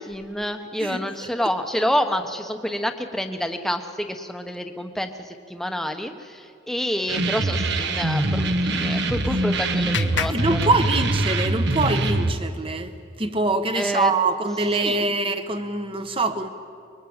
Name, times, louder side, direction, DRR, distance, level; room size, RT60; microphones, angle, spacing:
voice 1, 0.1-10.7 13.7-14.1 14.8-15.1, equal, ahead, 6 dB, 1.1 m, -28 dB
sound 1, 7.1-12.3, right 2 dB, 60° right, 1.3 m, -23 dB
Clapping, 8.8-11.4, left 7 dB, 65° left, 1.1 m, -35 dB
voice 2, 10.3-16.5, right 3 dB, 25° right, 9 dB, 1.3 m, -24 dB
25.0 x 22.0 x 8.9 m, 2.4 s
head